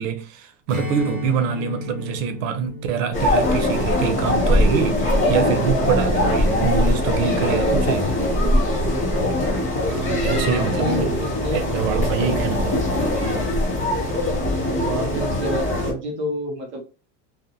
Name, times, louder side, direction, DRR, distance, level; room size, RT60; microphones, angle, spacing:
voice 1, 0.0-8.1 10.2-11.1 11.5-12.8, right 7 dB, 90° right, 0.7 m, -25 dB
Strum, 0.7-5.5, left 2 dB, 55° right, 1.2 m, -34 dB
sound 1, 3.1-15.9, left 1 dB, 20° left, 0.5 m, -21 dB
voice 2, 9.8-12.1 14.8-16.8, right 1 dB, 30° right, 0.6 m, -29 dB
2.5 x 2.1 x 2.7 m
cardioid pair, 180°, 38 cm